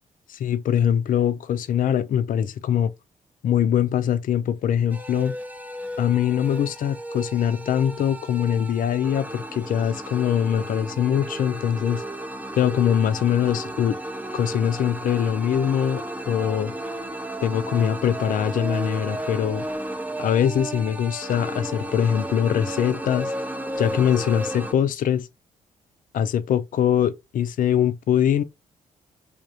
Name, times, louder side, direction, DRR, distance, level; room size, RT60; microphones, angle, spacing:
voice 1, 0.3-2.9 3.4-5.4 6.0-12.0 12.6-14.0 14.3-16.7 17.4-19.6 20.2-23.3 23.8-25.3 26.1-28.4, left 9 dB, 60° left, 0.5 m, -23 dB
sound 1, 4.9-24.7, right 1 dB, 10° right, 0.6 m, -33 dB
3.4 x 2.5 x 2.8 m
hypercardioid pair, 45°, 16 cm